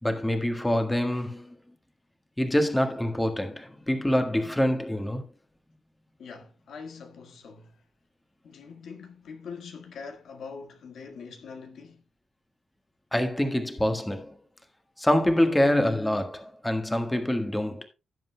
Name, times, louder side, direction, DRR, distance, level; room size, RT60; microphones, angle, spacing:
voice 1, 0.0-1.5 2.4-5.2 13.1-14.4 15.0-17.9, left 1 dB, 10° left, 1.5 m, -25 dB
voice 2, 6.2-7.8 8.4-12.0, left 5 dB, 80° left, 1.6 m, -43 dB
17.0 x 7.5 x 2.2 m
cardioid pair, 105°, 0 cm